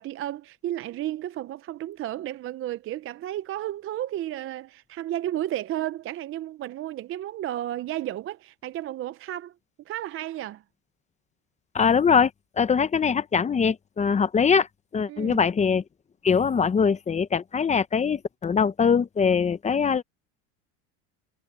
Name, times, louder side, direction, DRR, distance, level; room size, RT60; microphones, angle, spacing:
voice 1, 0.0-9.5 9.9-10.6 15.1-15.4, right 13 dB, 35° right, 0.5 m, -33 dB
voice 2, 11.7-12.3 12.6-14.7 14.9-15.8 16.2-20.0, left 6 dB, 20° left, 0.7 m, -22 dB
supercardioid pair, 130°, 40 cm